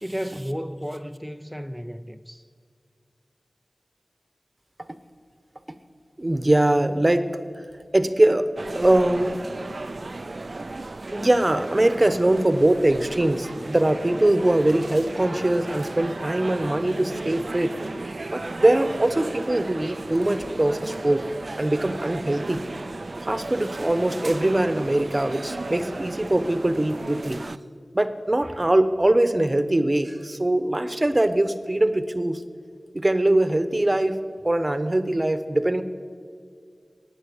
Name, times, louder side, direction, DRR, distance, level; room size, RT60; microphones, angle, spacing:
voice 1, 0.0-2.5, equal, ahead, 0.5 m, -33 dB
voice 2, 6.2-7.6 7.9-8.5 8.7-9.4 11.1-17.8 18.3-21.2 21.6-22.6 23.2-27.4 27.9-32.4 32.9-34.2 34.4-35.8, right 1 dB, 30° right, 0.9 m, -22 dB
sound 1, 8.6-27.6, right 2 dB, 60° right, 0.4 m, -35 dB
17.0 x 9.1 x 7.2 m
wide cardioid pair, 40°, 0 cm